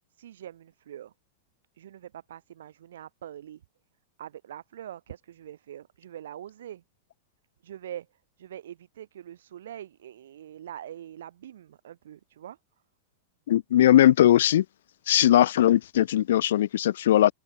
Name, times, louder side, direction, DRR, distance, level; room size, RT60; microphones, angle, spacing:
voice 1, 0.2-1.1 1.8-3.6 4.2-6.8 7.6-8.1 8.4-12.6, right 11 dB, 60° right, 6.3 m, -43 dB
voice 2, 13.5-14.6 15.1-17.3, left 12 dB, 60° left, 1.1 m, -19 dB
figure-of-eight pair, 90°, 0 cm